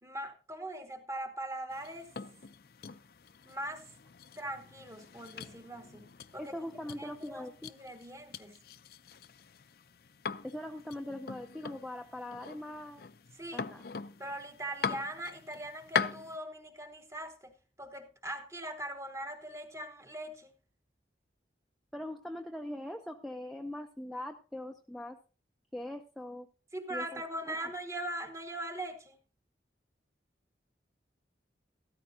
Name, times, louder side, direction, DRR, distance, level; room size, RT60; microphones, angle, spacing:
voice 1, 0.0-2.1 3.5-3.9 4.4-6.5 6.9-8.6 13.3-13.7 14.2-20.5 26.7-29.2, right 1 dB, 15° right, 1.0 m, -41 dB
sound 1, 1.7-16.4, left 6 dB, 55° left, 0.5 m, -42 dB
voice 2, 6.4-7.7 10.4-13.1 13.5-13.9 21.9-25.2 25.7-26.5 26.9-27.6, left 1 dB, ahead, 0.5 m, -41 dB
13.5 x 13.5 x 2.7 m
head